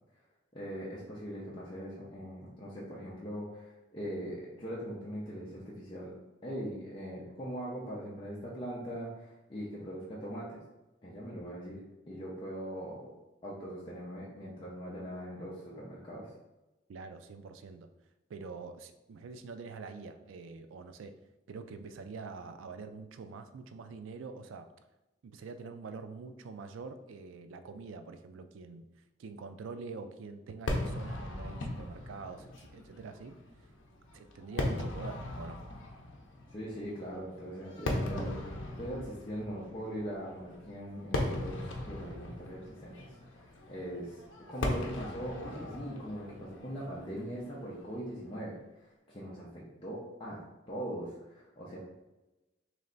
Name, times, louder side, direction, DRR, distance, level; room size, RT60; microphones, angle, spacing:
voice 1, 0.5-6.1 6.4-10.6 11.0-11.8 12.1-13.0 13.4-16.3 36.5-44.2 44.5-50.4 50.7-51.8, equal, 25° left, -7 dB, 0.6 m, -41 dB
voice 2, 16.9-17.9 18.3-21.1 21.5-24.7 25.2-28.9 29.2-33.4 34.1-35.6, right 4 dB, 80° right, 8 dB, 0.4 m, -45 dB
Fireworks, 30.7-48.0, left 1 dB, 75° left, 0.6 m, -39 dB
3.3 x 3.2 x 3.9 m, 1.0 s
head